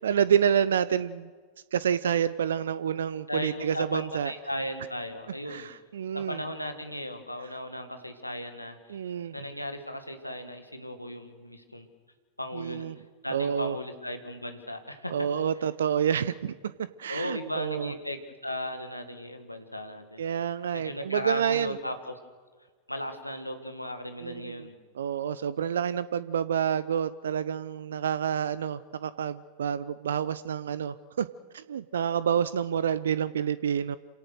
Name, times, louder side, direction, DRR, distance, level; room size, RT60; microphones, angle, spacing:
voice 1, 0.0-1.3 1.7-4.3 5.5-6.4 8.9-9.4 12.5-13.0 13.3-13.8 15.1-17.9 20.2-21.8 24.2-24.7 25.0-31.3 31.5-34.0, right 8 dB, 65° right, 17 dB, 0.6 m, -28 dB
voice 2, 3.3-5.7 6.1-9.0 9.3-11.9 12.4-12.8 13.2-15.1 17.1-20.2 20.7-22.1 22.9-24.7, left 1 dB, 85° left, 7 dB, 1.9 m, -36 dB
27.5 x 17.5 x 6.5 m, 1.5 s
figure-of-eight pair, 90°, 0 cm